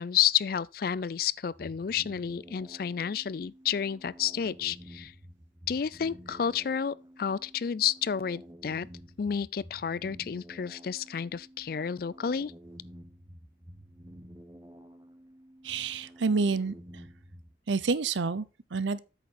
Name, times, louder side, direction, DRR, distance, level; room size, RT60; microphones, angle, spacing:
voice 1, 0.0-5.1 5.7-8.9 9.2-12.5, left 8 dB, 50° left, 0.4 m, -30 dB
sound 1, 1.5-17.6, equal, 20° right, 0.8 m, -51 dB
voice 2, 15.6-17.0 17.7-19.0, right 4 dB, 85° right, 0.7 m, -29 dB
8.4 x 6.7 x 4.1 m
head